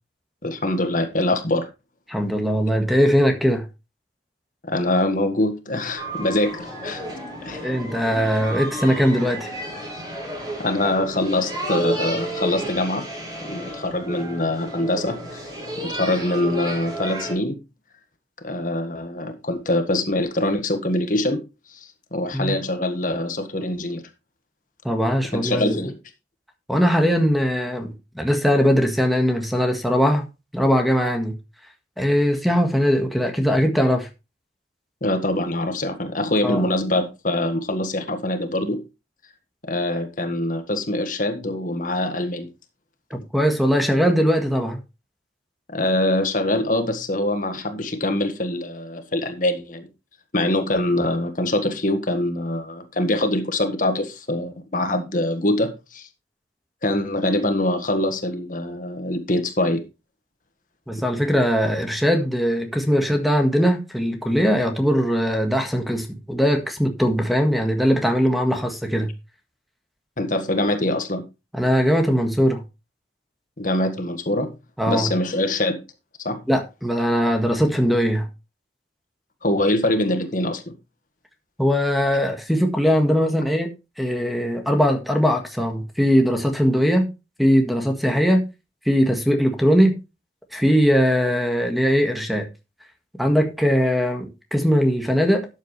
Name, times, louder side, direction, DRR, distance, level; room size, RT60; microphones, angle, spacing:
voice 1, 0.4-1.7 4.6-7.1 7.4-7.7 10.6-13.1 13.4-15.5 15.8-17.6 18.4-21.4 21.7-24.1 25.3-26.0 35.0-38.8 39.6-42.5 45.7-49.9 50.3-56.1 56.8-59.8 61.0-61.1 70.2-71.2 73.6-74.5 74.9-75.8 76.2-76.4 79.4-80.7, left 1 dB, 50° left, 1.6 m, -24 dB
voice 2, 2.1-3.7 7.6-9.5 22.3-22.6 24.8-25.8 26.7-30.2 30.5-31.4 32.0-34.1 36.4-36.6 43.1-44.8 60.9-69.1 71.5-72.6 74.8-75.1 76.5-78.3 81.6-87.1 87.4-88.4 88.8-89.9 90.5-92.5 93.2-95.5, equal, ahead, 1.6 m, -20 dB
sound 1, 6.0-17.3, right 1 dB, 25° right, 6.9 m, -32 dB
12.5 x 8.2 x 3.3 m
head